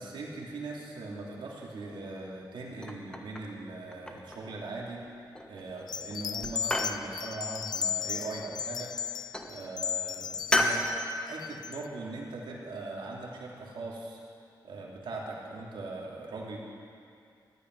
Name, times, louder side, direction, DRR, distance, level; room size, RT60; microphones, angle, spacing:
voice 1, 0.0-8.9 9.4-10.9 11.2-14.2 14.6-16.6, right 3 dB, 80° right, -3 dB, 3.1 m, -40 dB
sound 1, 2.8-3.6 3.9-4.5 5.3-5.8 6.1-7.0 8.4-8.9 9.3-9.6 10.5-10.8, left 1 dB, 10° left, 1.3 m, -31 dB
sound 2, 5.9-11.9, left 8 dB, 60° left, 0.4 m, -35 dB
14.0 x 9.5 x 9.6 m, 2.4 s
wide cardioid pair, 110°, 8 cm